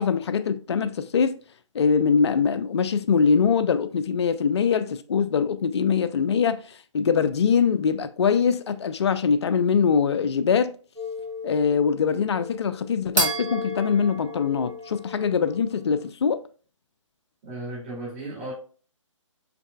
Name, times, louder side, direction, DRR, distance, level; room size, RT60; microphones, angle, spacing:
voice 1, 0.0-1.4 1.7-10.7 11.4-16.4, left 6 dB, 55° left, 0.4 m, -23 dB
sound 1, 11.0-15.8, equal, 85° right, 1.9 m, -32 dB
voice 2, 17.4-18.5, right 2 dB, 25° right, 2.2 m, -35 dB
5.8 x 3.2 x 2.3 m
figure-of-eight pair, 145°, 17 cm